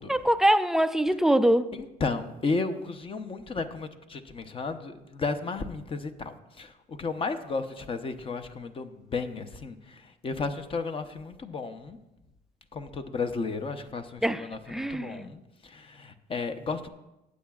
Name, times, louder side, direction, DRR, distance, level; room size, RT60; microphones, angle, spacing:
voice 1, 0.1-1.7 14.2-15.3, right 1 dB, ahead, 0.3 m, -24 dB
voice 2, 1.7-12.0 12.7-16.9, left 4 dB, 30° left, 0.7 m, -33 dB
14.5 x 8.3 x 2.4 m
cardioid pair, 110°, 17 cm